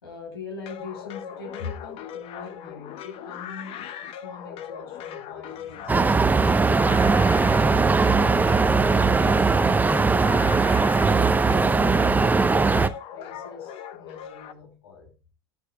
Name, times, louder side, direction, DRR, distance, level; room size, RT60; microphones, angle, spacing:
voice 1, 0.0-7.1 11.1-15.1, left 4 dB, 85° left, 2.9 m, -42 dB
sound 1, 0.7-14.5, left 9 dB, 50° left, 0.9 m, -39 dB
sound 2, 5.9-12.9, right 4 dB, 15° right, 0.7 m, -20 dB
14.0 x 7.9 x 2.2 m
hypercardioid pair, 75°, 12 cm